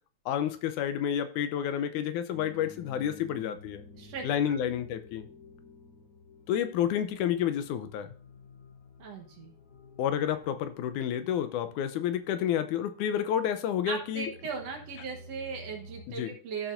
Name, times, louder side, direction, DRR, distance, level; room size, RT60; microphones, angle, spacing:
voice 1, 0.3-3.8 4.2-5.3 6.5-8.1 10.0-14.3 16.1-16.3, left 9 dB, 85° left, 10 dB, 2.1 m, -30 dB
sound 1, 2.3-16.0, left 2 dB, 65° left, 4.1 m, -52 dB
voice 2, 3.9-4.6 9.0-9.5 13.9-16.7, right 5 dB, 60° right, 2 dB, 2.1 m, -38 dB
13.5 x 7.0 x 2.6 m, 0.42 s
omnidirectional pair, 3.6 m